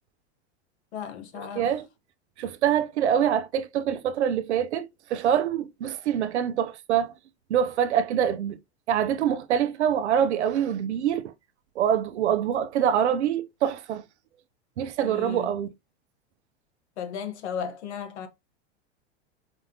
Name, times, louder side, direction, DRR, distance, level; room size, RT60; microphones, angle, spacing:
voice 1, 0.9-1.7 15.0-15.5 17.0-18.3, left 7 dB, 80° left, 1.2 m, -35 dB
voice 2, 1.6-1.9 2.4-7.1 7.5-8.6 8.9-11.3 11.8-14.0 14.8-15.7, right 9 dB, 90° right, 0.6 m, -25 dB
4.6 x 3.9 x 2.8 m
hypercardioid pair, 105°, 33 cm